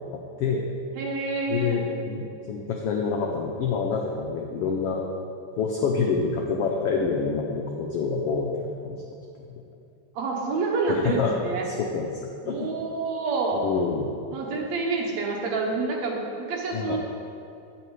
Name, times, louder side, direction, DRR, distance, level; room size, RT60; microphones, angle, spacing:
voice 1, 1.0-1.8 10.1-11.7 12.4-13.7 14.3-17.0, right 3 dB, 70° right, -1 dB, 2.2 m, -28 dB
voice 2, 1.5-5.0 5.6-9.0 9.4-9.6 10.9-11.3 11.7-12.0 12.5-12.7 13.5-14.1 16.7-17.0, left 5 dB, 80° left, 0 dB, 1.3 m, -27 dB
8.9 x 7.7 x 4.7 m, 2.5 s
omnidirectional pair, 3.5 m